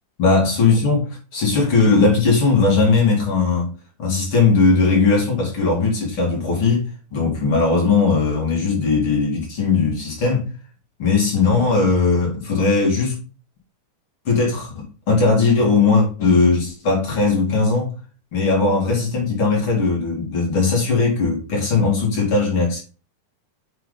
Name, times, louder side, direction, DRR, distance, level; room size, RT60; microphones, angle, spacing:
voice 1, 0.2-3.7 4.0-6.9 7.1-10.5 11.0-13.2 14.2-17.9 18.3-22.8, left 4 dB, 40° left, 3.2 m, -18 dB
7.6 x 4.7 x 4.0 m
omnidirectional pair, 3.7 m